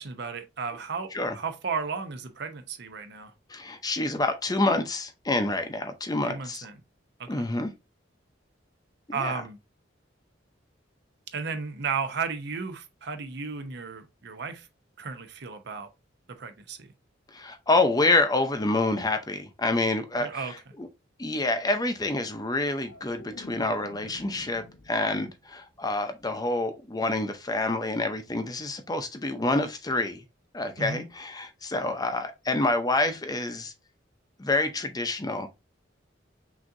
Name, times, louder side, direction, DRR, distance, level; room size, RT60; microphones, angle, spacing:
voice 1, 0.0-1.1 1.3-3.3 6.3-6.7 7.2-7.5 9.1-9.6 11.3-14.7 15.0-15.9 16.4-16.9 20.2-20.5 30.8-31.1, right 5 dB, 65° right, 0.7 m, -34 dB
voice 2, 3.5-6.7 7.3-7.7 9.1-9.3 17.3-20.9 21.2-30.2 30.5-33.7 34.4-35.5, left 2 dB, 20° left, 0.6 m, -27 dB
sound 1, 22.3-25.5 25.8-26.2, left 2 dB, 85° left, 0.8 m, -49 dB
6.1 x 2.8 x 2.6 m
head